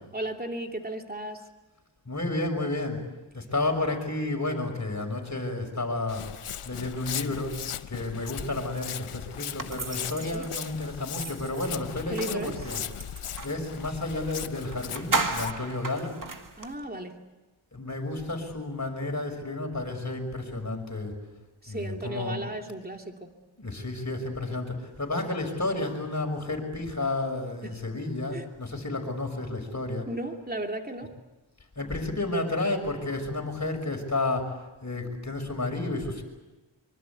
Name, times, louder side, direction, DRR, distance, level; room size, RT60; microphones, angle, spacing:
voice 1, 0.1-1.5 10.3-10.5 12.1-12.7 16.6-17.2 21.6-23.3 27.6-27.8 28.3-28.5 30.1-31.2, right 1 dB, 20° right, 3 dB, 2.9 m, -35 dB
voice 2, 2.1-3.0 3.3-6.2 6.6-7.6 7.9-12.8 13.4-16.2 17.7-21.1 21.7-22.4 23.6-30.1 31.8-34.6 34.8-36.2, left 2 dB, 35° left, 3 dB, 5.9 m, -31 dB
Walk footsteps, 6.1-15.5, left 9 dB, 90° left, 0.9 m, -38 dB
sound 1, 9.6-13.6 14.3-14.4 14.7-16.7, right 3 dB, 40° right, 2.0 m, -34 dB
24.5 x 24.5 x 8.5 m, 1.1 s
wide cardioid pair, 75°, 49 cm